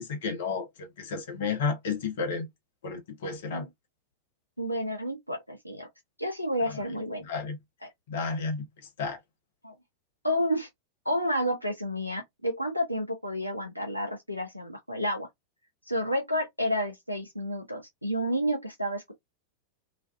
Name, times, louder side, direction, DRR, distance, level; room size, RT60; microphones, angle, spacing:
voice 1, 0.0-2.5 2.8-3.7 6.7-6.8 7.3-7.6 8.1-8.6 9.0-9.2, left 5 dB, 55° left, 0.8 m, -32 dB
voice 2, 4.6-5.9 6.2-7.2 7.8-7.9 9.6-9.7 10.2-10.7 11.1-15.3 15.9-19.1, equal, 90° left, 0.5 m, -30 dB
2.4 x 2.3 x 2.2 m
figure-of-eight pair, 90°, 0 cm